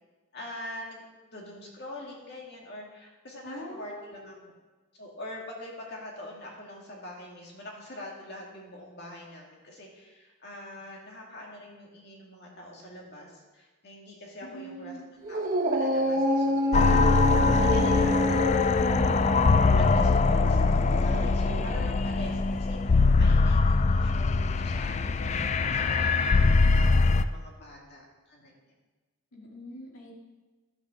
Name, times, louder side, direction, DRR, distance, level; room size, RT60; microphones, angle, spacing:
voice 1, 0.3-1.0 1.3-4.4 5.0-14.9 15.3-19.3 19.7-28.6, left 1 dB, 50° left, -2 dB, 2.3 m, -44 dB
voice 2, 3.4-4.3 14.4-15.1 29.3-30.1, equal, 90° left, -2 dB, 2.5 m, -43 dB
Dog, 15.2-21.9, equal, 40° right, 1.0 m, -29 dB
sound 1, 16.7-27.2, left 3 dB, 30° left, 0.3 m, -22 dB
11.0 x 6.2 x 6.3 m, 1.3 s
head